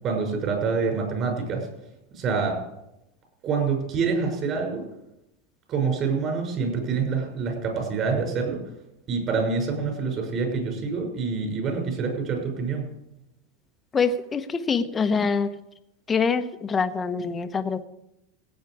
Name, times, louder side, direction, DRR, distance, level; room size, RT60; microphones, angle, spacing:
voice 1, 0.0-1.7 2.1-2.6 3.4-4.8 5.7-8.6 9.1-12.8, right 5 dB, 40° right, 2 dB, 6.0 m, -26 dB
voice 2, 13.9-15.5 16.1-17.8, left 5 dB, 20° left, 9 dB, 0.9 m, -25 dB
17.0 x 8.4 x 4.9 m, 0.85 s
hypercardioid pair, 115°, 0 cm